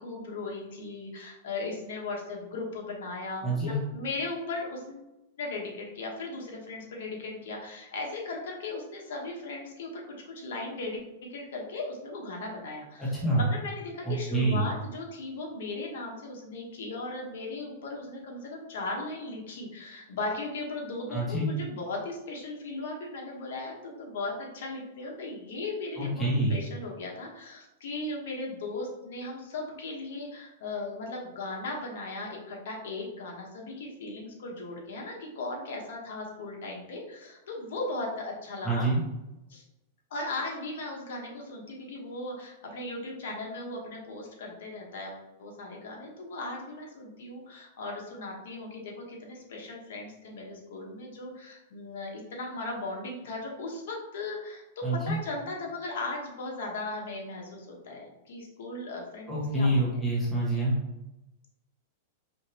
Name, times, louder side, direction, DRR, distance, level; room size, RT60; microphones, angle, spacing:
voice 1, 0.0-5.0 5.4-38.9 39.5-39.6 40.1-60.0, left 2 dB, 75° left, -1 dB, 1.2 m, -37 dB
voice 2, 3.4-3.7 13.0-13.4 14.0-14.6 21.1-21.5 26.0-26.6 38.6-39.0 54.8-55.2 59.3-60.7, right 2 dB, 5° left, -8 dB, 1.4 m, -27 dB
4.9 x 3.1 x 3.0 m, 0.95 s
supercardioid pair, 145°, 0 cm